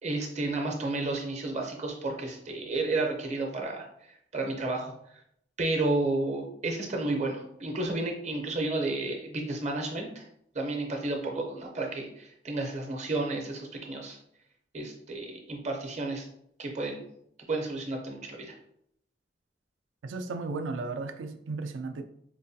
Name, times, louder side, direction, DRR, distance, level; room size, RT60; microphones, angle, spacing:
voice 1, 0.0-4.9 5.6-10.3 10.5-14.2 14.7-16.3 16.6-17.1 17.5-18.6, right 2 dB, 35° right, 0.6 m, -32 dB
voice 2, 20.0-22.0, right 3 dB, 75° right, 0.4 m, -35 dB
4.5 x 2.2 x 2.7 m
head